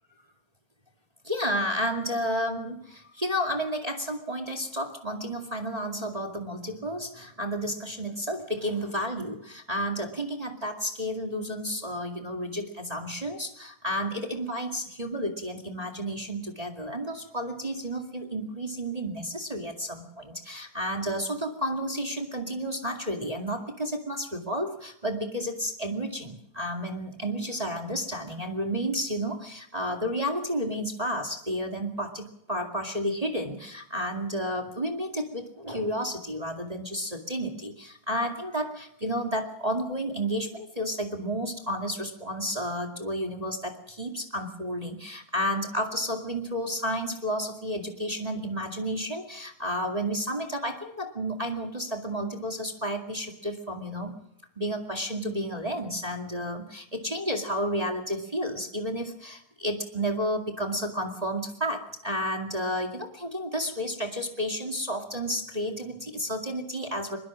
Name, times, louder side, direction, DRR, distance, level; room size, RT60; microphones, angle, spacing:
voice 1, 1.2-54.1 54.6-67.2, equal, 15° right, 2 dB, 1.9 m, -31 dB
23.5 x 22.0 x 6.3 m, 0.72 s
omnidirectional pair, 3.3 m